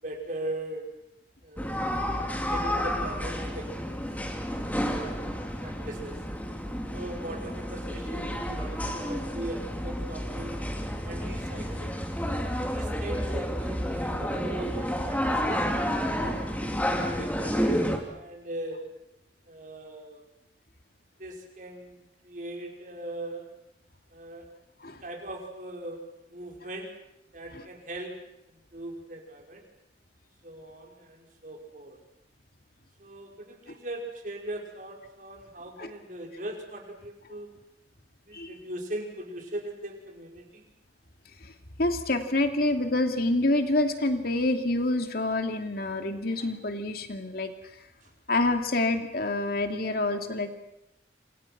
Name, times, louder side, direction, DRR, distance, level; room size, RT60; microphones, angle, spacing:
voice 1, 0.0-0.9 1.4-2.2 2.5-3.9 4.8-5.3 5.6-6.2 6.9-10.7 11.0-12.0 12.6-15.7 16.2-18.8 19.5-20.2 21.2-23.5 24.1-24.5 24.8-27.0 27.3-29.6 30.4-32.0 33.0-37.5 38.2-40.6, right 1 dB, 45° right, 1 dB, 5.5 m, -40 dB
sound 1, 1.6-18.0, equal, 10° left, 3.1 m, -30 dB
voice 2, 41.8-47.5 48.3-50.5, left 2 dB, 55° left, 6 dB, 2.7 m, -27 dB
28.0 x 27.0 x 6.1 m, 0.84 s
head